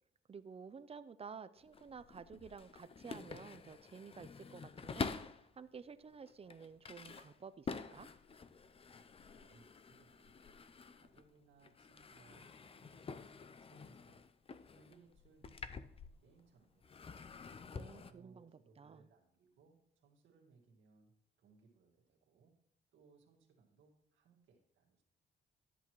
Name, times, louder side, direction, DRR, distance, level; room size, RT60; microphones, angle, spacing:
voice 1, 0.3-8.1 17.7-19.1, right 6 dB, 30° right, 14 dB, 0.5 m, -52 dB
sound 1, 1.6-5.5 6.1-11.3 11.6-16.5 16.8-18.1, left 5 dB, 30° left, 0.5 m, -48 dB
voice 2, 9.3-14.2 14.7-15.9 16.2-17.3 17.9-22.5 22.9-25.0, right 4 dB, 85° right, -1 dB, 1.9 m, -68 dB
12.5 x 8.1 x 3.1 m, 0.77 s
cardioid pair, 90°, 20 cm